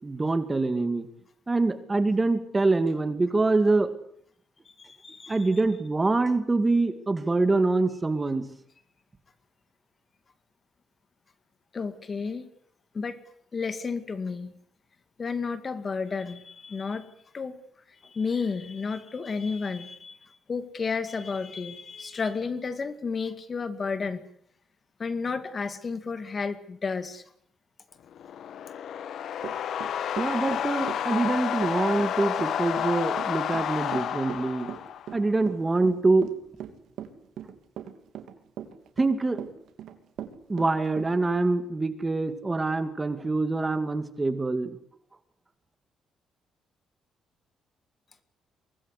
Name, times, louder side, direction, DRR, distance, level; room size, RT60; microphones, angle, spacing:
voice 1, 0.0-1.1 1.5-3.9 5.3-8.4 30.2-34.7 35.1-36.3 39.0-39.4 40.5-44.7, right 3 dB, 20° right, 10 dB, 2.3 m, -25 dB
voice 2, 4.8-5.5 11.7-12.4 12.9-13.2 13.5-14.5 15.2-17.1 17.3-17.6 18.0-20.2 20.5-24.2 25.0-27.2, left 5 dB, 35° left, 11 dB, 2.1 m, -32 dB
sound 1, 28.1-35.2, left 9 dB, 65° left, 1.2 m, -30 dB
Run / Walk footsteps, 29.4-41.1, right 10 dB, 75° right, 3.0 m, -39 dB
24.0 x 19.5 x 8.3 m, 0.69 s
cardioid pair, 110°, 0 cm